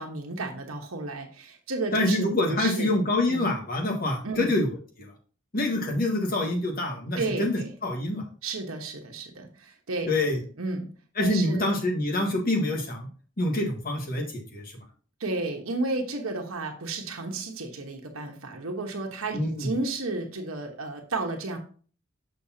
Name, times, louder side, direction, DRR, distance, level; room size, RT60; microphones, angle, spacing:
voice 1, 0.0-3.0 3.3-3.5 4.2-4.5 7.2-7.7 8.4-10.1 10.6-10.9 11.2-11.7 15.2-21.6, right 2 dB, 90° right, 3 dB, 1.1 m, -32 dB
voice 2, 1.9-4.7 5.0-5.1 5.5-8.2 10.1-10.4 11.2-13.1 13.4-14.7 19.3-19.7, left 1 dB, 45° left, 1 dB, 1.6 m, -26 dB
6.5 x 6.3 x 2.8 m, 0.41 s
head